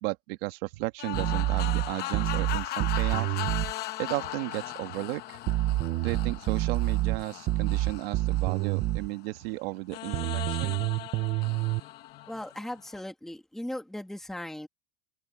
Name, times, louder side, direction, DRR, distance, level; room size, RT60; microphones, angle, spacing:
voice 1, 0.0-3.4 4.0-5.4 6.0-10.7, right 21 dB, 55° right, 1.7 m, -34 dB
sound 1, 1.0-9.3 9.9-13.0, left 15 dB, 30° left, 0.8 m, -38 dB
sound 2, 1.1-3.7 5.5-9.1 10.1-11.8, right 16 dB, 20° right, 0.4 m, -27 dB
voice 2, 12.3-14.7, left 1 dB, ahead, 1.8 m, -38 dB
open air
supercardioid pair, 170°, 34 cm